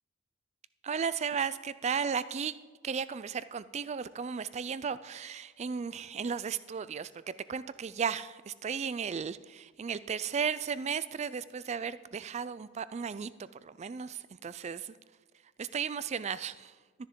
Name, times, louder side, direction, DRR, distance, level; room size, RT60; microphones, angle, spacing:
voice 1, 0.8-2.5 2.8-15.0 15.6-16.8, right 6 dB, 30° right, 16 dB, 0.3 m, -35 dB
12.5 x 10.0 x 3.7 m, 1.4 s
head